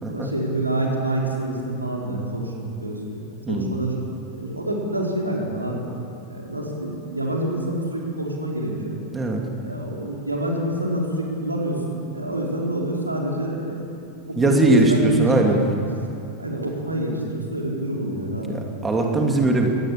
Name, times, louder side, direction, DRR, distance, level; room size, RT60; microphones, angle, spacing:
voice 1, 0.1-3.2 3.5-3.9 4.3-5.8 6.3-9.0 9.6-11.8 12.1-13.9 14.2-15.6 16.4-18.6 19.0-19.3, right 1 dB, 85° right, -2 dB, 4.7 m, -27 dB
voice 2, 3.5-3.8 9.1-9.4 14.4-15.6 18.5-19.7, right 2 dB, 15° right, 1 dB, 2.9 m, -20 dB
22.5 x 18.5 x 8.9 m, 2.7 s
figure-of-eight pair, 90°, 0 cm